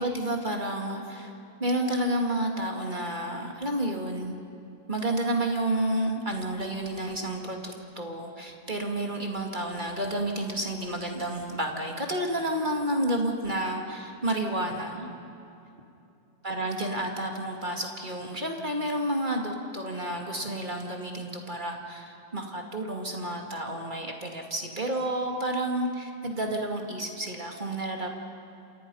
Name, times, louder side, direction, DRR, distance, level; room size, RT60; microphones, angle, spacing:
voice 1, 0.0-1.3 1.6-4.4 4.9-15.1 16.4-28.1, right 1 dB, 25° right, 2 dB, 2.4 m, -30 dB
28.0 x 27.5 x 5.6 m, 2.8 s
omnidirectional pair, 2.1 m